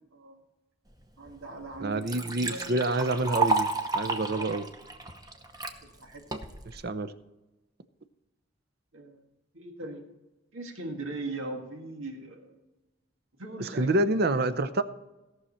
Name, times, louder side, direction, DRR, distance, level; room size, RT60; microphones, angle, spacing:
voice 1, 1.2-2.7 5.8-6.2 8.9-9.2 9.5-10.0 10.5-12.5 13.4-14.0, right 2 dB, 90° right, 3 dB, 1.8 m, -40 dB
Liquid, 1.3-1.4 1.7-5.8 6.3-6.8, right 3 dB, 20° right, 0.9 m, -31 dB
voice 2, 1.8-3.7 3.9-4.6 6.8-7.1 13.6-14.8, right 2 dB, 50° right, 13 dB, 0.6 m, -27 dB
17.0 x 6.4 x 4.3 m, 1.0 s
head